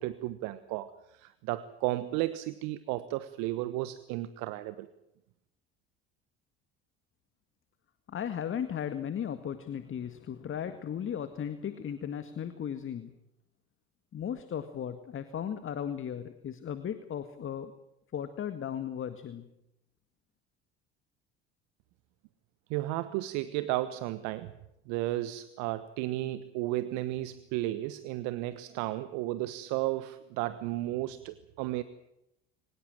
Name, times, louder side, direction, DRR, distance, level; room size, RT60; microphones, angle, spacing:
voice 1, 0.0-4.9 22.7-24.5 24.9-31.8, right 16 dB, 65° right, 15 dB, 1.2 m, -33 dB
voice 2, 8.1-13.1 14.1-17.7 18.1-19.5, left 8 dB, 40° left, 11 dB, 2.0 m, -36 dB
23.5 x 20.5 x 7.6 m, 0.85 s
hypercardioid pair, 65°, 32 cm